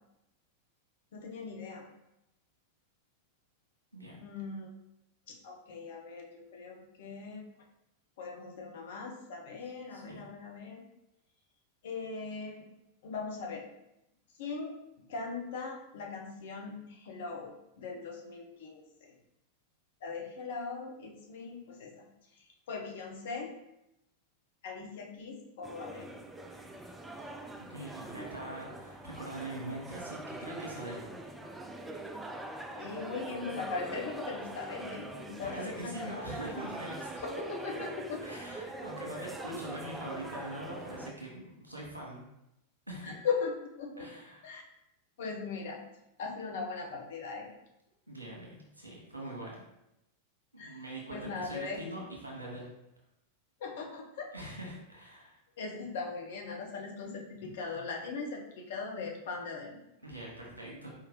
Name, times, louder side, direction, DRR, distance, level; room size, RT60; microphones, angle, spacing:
voice 1, 1.1-1.9 4.2-4.7 5.3-7.5 8.2-10.8 11.8-12.7 13.0-13.7 14.4-14.8 15.1-19.1 20.0-23.5 24.6-26.2 32.7-36.1 37.2-38.2 43.0-44.1 44.4-44.6 45.2-45.8 46.2-47.5 50.6-50.8 51.1-51.8 53.6-54.3 55.6-59.8, left 4 dB, 55° left, 1 dB, 0.9 m, -39 dB
voice 2, 9.9-10.3 27.6-31.0 35.4-37.2 38.2-42.2 42.9-43.1 44.0-44.4 48.1-49.7 50.5-52.7 54.3-55.4 60.0-60.9, right 1 dB, 80° right, -3 dB, 1.4 m, -43 dB
sound 1, 25.6-41.1, right 2 dB, 10° right, 0.4 m, -43 dB
4.5 x 3.6 x 3.1 m, 0.86 s
figure-of-eight pair, 90°, 0 cm